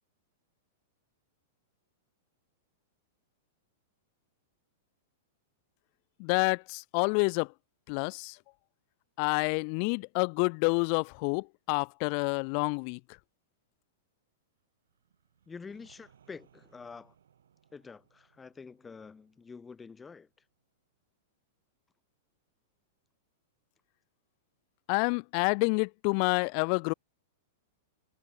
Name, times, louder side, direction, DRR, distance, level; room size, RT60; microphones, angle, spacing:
voice 1, 6.2-7.5 7.9-8.4 9.2-13.0 24.9-26.9, left 40 dB or more, 50° left, 0.3 m, -28 dB
sound 1, 14.8-20.6, right 8 dB, 85° right, 4.1 m, -66 dB
voice 2, 15.5-17.1 17.7-20.3, left 5 dB, 15° left, 0.8 m, -47 dB
hypercardioid pair, 130°, 0 cm